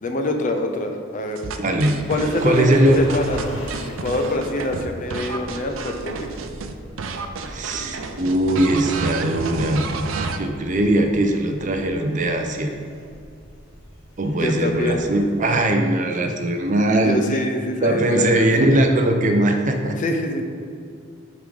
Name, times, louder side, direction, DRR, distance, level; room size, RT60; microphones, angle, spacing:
voice 1, 0.0-1.4 2.1-3.5 4.0-6.3 14.3-15.0 17.0-18.5 20.0-20.5, left 1 dB, 40° left, 5 dB, 0.6 m, -25 dB
sound 1, 1.4-6.7 7.0-10.4, right 4 dB, 85° right, 0.5 m, -30 dB
voice 2, 1.6-1.9 2.4-3.0 7.5-9.9 10.4-12.7 14.2-17.2 17.8-19.9, right 1 dB, 40° right, 4 dB, 0.6 m, -20 dB
sound 2, 1.9-15.6, equal, 70° left, 1.4 m, -42 dB
6.7 x 3.8 x 4.9 m, 2.3 s
head